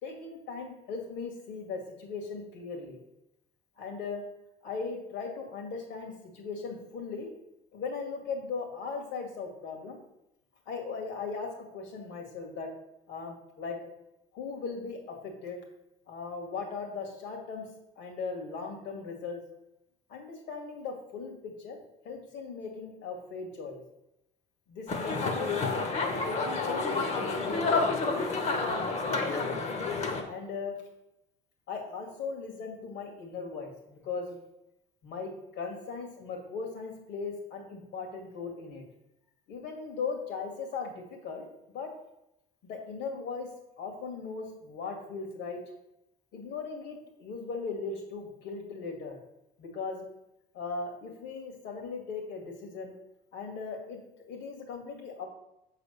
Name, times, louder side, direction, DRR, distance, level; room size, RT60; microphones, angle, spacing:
voice 1, 0.0-3.0 3.8-4.2 4.6-7.3 7.7-10.0 10.7-12.7 13.1-13.8 14.3-15.6 16.1-17.7 18.0-19.4 20.1-21.8 22.0-23.8 24.7-29.5 30.2-30.8 31.7-34.4 35.0-38.8 39.5-41.9 42.6-43.5 43.8-45.6 46.3-49.2 49.6-50.0 50.5-52.9 53.3-54.0 54.3-55.3, left 4 dB, 70° left, 3 dB, 2.3 m, -38 dB
sound 1, 24.9-30.2, left 3 dB, 35° left, 1.0 m, -29 dB
7.6 x 4.1 x 6.6 m, 0.85 s
cardioid pair, 170°, 19 cm